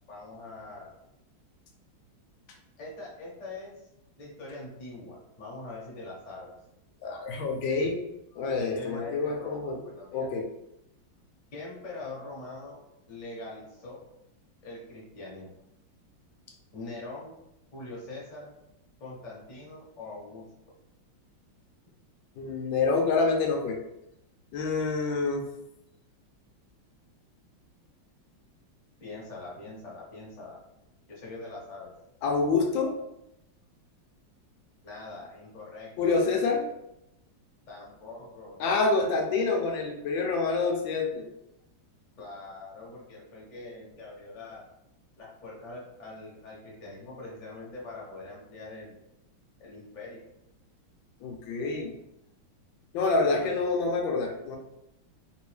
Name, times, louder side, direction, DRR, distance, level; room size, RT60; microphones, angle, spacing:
voice 1, 0.1-0.9 2.8-3.9 4.2-6.5 8.5-10.3 11.5-12.8 13.1-14.0 14.6-15.5 16.7-17.4 17.7-18.5 19.0-20.4 29.0-30.6 31.1-31.9 34.8-36.2 37.7-38.6 42.2-44.6 45.2-48.9 49.6-50.2 53.3-53.5, left 2 dB, 35° left, -5 dB, 0.8 m, -43 dB
voice 2, 7.0-8.0 8.3-9.8 10.1-10.4 22.4-23.8 24.5-25.5 32.2-32.9 36.0-36.7 38.6-41.3 51.2-51.9 52.9-54.6, left 4 dB, 80° left, 1 dB, 1.3 m, -27 dB
3.3 x 2.6 x 3.3 m, 0.84 s
omnidirectional pair, 2.1 m